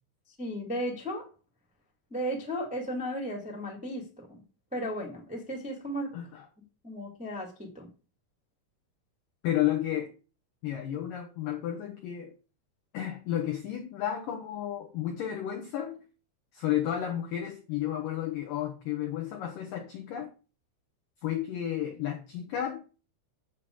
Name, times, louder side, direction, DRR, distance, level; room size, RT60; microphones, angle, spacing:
voice 1, 0.4-1.2 2.1-4.4 4.7-6.1 6.8-7.9, equal, 5° right, 0.5 m, -35 dB
voice 2, 6.1-6.5 9.4-10.1 10.6-12.3 12.9-16.0 16.5-20.3 21.2-22.8, left 11 dB, 80° left, 1.9 m, -32 dB
7.9 x 7.5 x 4.7 m
omnidirectional pair, 5.4 m